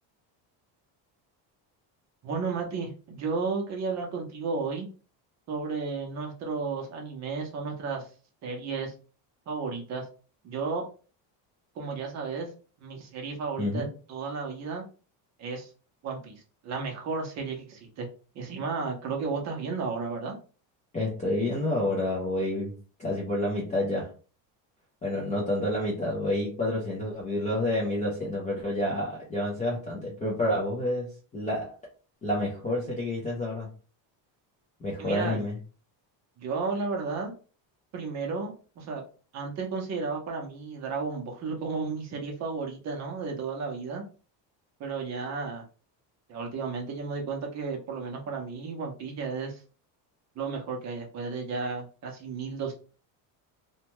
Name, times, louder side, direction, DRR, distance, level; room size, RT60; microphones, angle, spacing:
voice 1, 2.2-4.9 5.5-8.1 8.4-8.9 9.5-10.1 10.4-10.9 11.8-12.5 12.8-14.8 15.4-15.7 16.0-18.1 18.3-20.4 35.0-35.4 36.4-37.3 37.9-39.0 39.3-44.0 44.8-45.6 46.3-49.6 50.4-52.7, right 4 dB, 35° right, 2 dB, 0.6 m, -33 dB
voice 2, 13.6-13.9 20.9-22.7 23.0-24.1 25.0-31.8 32.2-33.7 34.8-35.6, left 1 dB, 20° left, -5 dB, 0.3 m, -29 dB
2.8 x 2.2 x 2.9 m, 0.37 s
cardioid pair, 180°, 47 cm